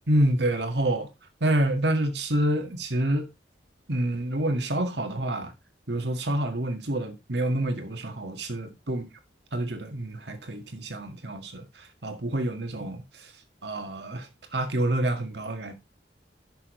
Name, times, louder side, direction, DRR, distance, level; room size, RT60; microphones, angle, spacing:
voice 1, 0.1-1.1 1.4-3.3 3.9-5.5 5.9-9.0 9.5-11.6 12.0-13.0 13.6-14.3 14.5-15.7, right 1 dB, 75° right, 1.7 m, -27 dB
11.0 x 6.2 x 3.1 m
head